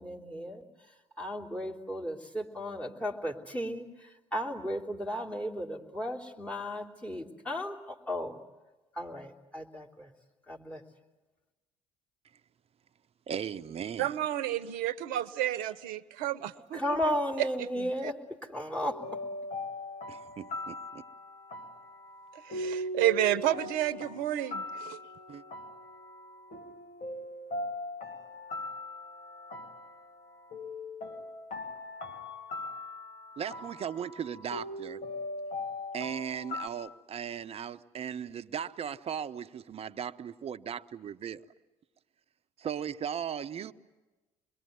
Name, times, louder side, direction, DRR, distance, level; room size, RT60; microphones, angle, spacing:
voice 1, 0.0-8.4 8.9-10.1 10.5-10.8 16.7-19.2, equal, 10° left, 3.3 m, -35 dB
voice 2, 13.3-14.1 20.1-21.0 25.3-25.4 33.4-35.0 35.9-41.4 42.6-43.7, right 8 dB, 40° right, 0.9 m, -37 dB
voice 3, 14.0-17.2 17.8-18.1 22.3-25.0, right 13 dB, 70° right, 1.0 m, -31 dB
sound 1, 18.8-36.7, left 2 dB, 50° left, 2.4 m, -40 dB
26.5 x 22.0 x 9.4 m
hypercardioid pair, 65°, 15 cm